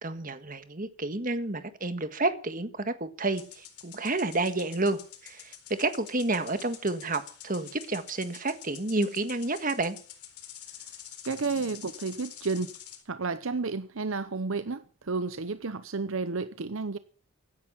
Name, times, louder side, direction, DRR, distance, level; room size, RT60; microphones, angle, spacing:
voice 1, 0.0-10.0, right 2 dB, 35° right, 1.6 m, -30 dB
sound 1, 3.3-13.0, left 10 dB, 90° left, 4.2 m, -47 dB
voice 2, 11.2-12.8 13.1-17.0, right 4 dB, 65° right, 0.8 m, -31 dB
16.5 x 10.5 x 7.3 m
head